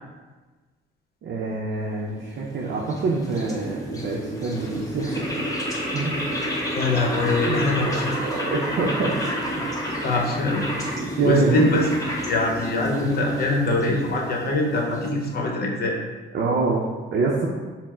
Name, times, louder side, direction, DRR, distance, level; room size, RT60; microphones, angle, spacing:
voice 1, 1.2-5.5 5.9-6.3 7.5-7.9 8.2-9.1 11.0-11.6 16.3-17.5, right 3 dB, 60° right, -3 dB, 0.5 m, -26 dB
sound 1, 2.1-15.5, equal, 15° left, 0.9 m, -30 dB
voice 2, 6.7-8.2 10.0-10.7 11.2-11.9 12.3-16.0, left 2 dB, 50° left, 0 dB, 0.9 m, -23 dB
4.2 x 2.1 x 4.3 m, 1.3 s
cardioid pair, 90°, 20 cm